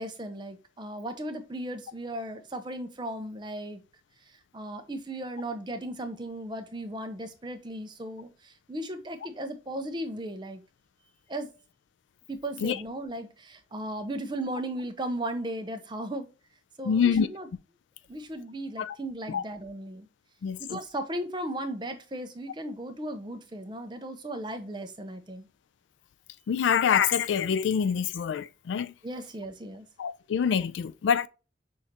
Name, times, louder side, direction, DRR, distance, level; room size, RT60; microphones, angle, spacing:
voice 1, 0.0-3.8 4.2-10.6 11.3-11.5 12.3-16.3 16.8-17.5 18.1-20.1 20.6-25.5 29.0-29.9, right 1 dB, 25° right, 0.6 m, -36 dB
voice 2, 16.8-17.3 18.8-19.0 19.3-19.4 20.4-20.8 26.5-28.9 30.0-31.3, left 7 dB, 90° left, 0.3 m, -26 dB
6.2 x 2.5 x 2.8 m
head